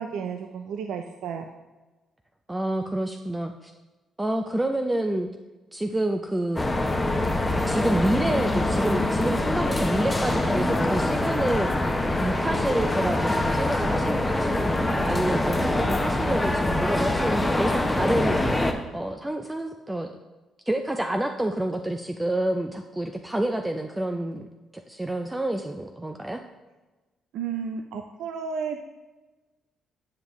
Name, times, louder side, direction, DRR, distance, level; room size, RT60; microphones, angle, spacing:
voice 1, 0.0-1.5 27.3-28.8, right 6 dB, 85° right, 5 dB, 0.4 m, -32 dB
voice 2, 2.5-3.7 4.2-5.3 5.7-6.6 7.7-11.7 12.2-18.7 18.9-20.1 20.7-24.5 24.9-26.4, right 1 dB, 10° right, 5 dB, 0.4 m, -28 dB
sound 1, 6.6-18.7, left 1 dB, 15° left, 0.7 m, -24 dB
9.5 x 5.2 x 3.0 m, 1.2 s
cardioid pair, 90°, 0 cm